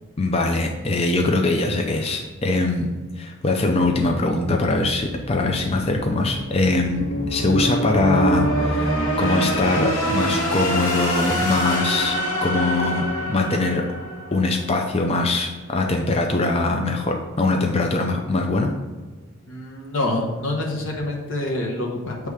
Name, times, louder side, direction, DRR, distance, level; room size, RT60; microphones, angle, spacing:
voice 1, 0.2-2.9 3.2-13.8 14.3-18.7, left 2 dB, 25° left, 2 dB, 0.4 m, -22 dB
sound 1, 4.2-14.9, right 1 dB, 80° left, 1.8 m, -25 dB
voice 2, 19.5-22.3, left 1 dB, 60° left, -1 dB, 1.1 m, -26 dB
6.9 x 3.3 x 4.8 m, 1.3 s
head